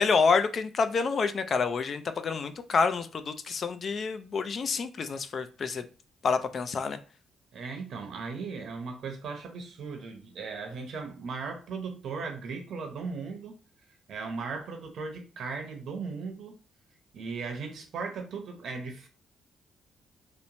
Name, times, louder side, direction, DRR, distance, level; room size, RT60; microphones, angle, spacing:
voice 1, 0.0-5.8 6.2-7.0, left 5 dB, 50° left, 0.3 m, -28 dB
voice 2, 7.5-13.6 14.1-16.6 17.1-19.1, right 4 dB, 65° right, 0.7 m, -37 dB
2.9 x 2.0 x 2.6 m
cardioid pair, 90°, 0 cm